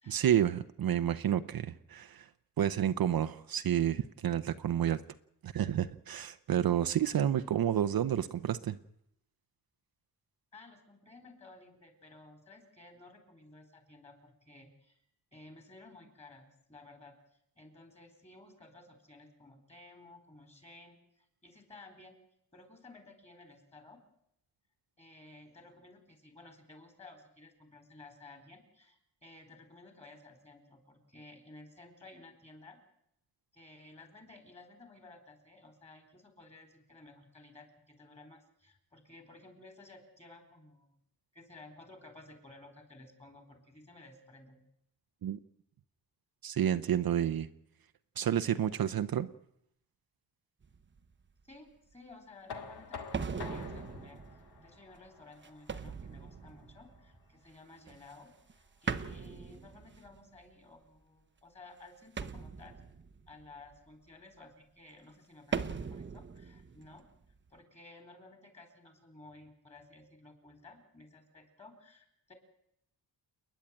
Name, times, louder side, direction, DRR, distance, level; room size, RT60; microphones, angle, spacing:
voice 1, 0.1-2.3 2.6-5.0 5.4-8.8 45.2-45.4 46.4-47.5 48.2-49.3, right 10 dB, 60° right, 10 dB, 0.8 m, -30 dB
voice 2, 10.5-15.0 15.3-17.1 17.6-22.2 22.5-24.0 25.0-32.8 33.5-41.0 41.3-44.6 51.4-54.2 54.6-62.8 63.3-67.1 67.5-72.3, left 2 dB, 15° left, 7 dB, 4.4 m, -55 dB
sound 1, 50.6-51.2 51.9-52.0 53.1-57.4 57.9-58.5 58.9-60.4 62.2-63.8 65.5-67.6, right 5 dB, 30° right, 0.9 m, -40 dB
Knock, 52.5-58.3, left 5 dB, 70° left, 2.2 m, -49 dB
29.0 x 10.5 x 8.9 m, 0.75 s
wide cardioid pair, 150°, 41 cm